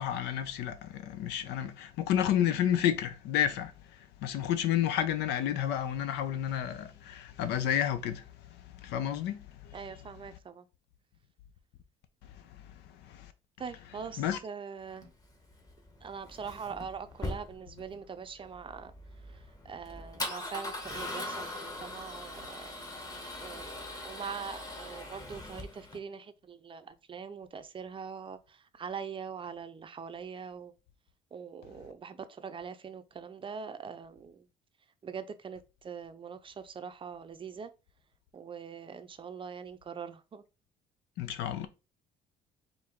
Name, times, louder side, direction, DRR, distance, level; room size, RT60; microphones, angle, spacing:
voice 1, 0.0-3.7 4.2-8.2 8.8-9.7 13.1-13.3 14.2-14.4 41.2-41.7, left 10 dB, 85° left, 0.7 m, -30 dB
voice 2, 9.7-10.7 13.6-15.1 16.0-18.9 19.6-22.8 23.4-30.7 31.3-34.5 35.0-37.7 38.3-40.4, right 6 dB, 30° right, 0.5 m, -43 dB
Male speech man speaking / Car / Engine starting, 14.9-26.0, left 1 dB, 20° left, 1.1 m, -41 dB
4.7 x 2.6 x 3.5 m
cardioid pair, 110°, 17 cm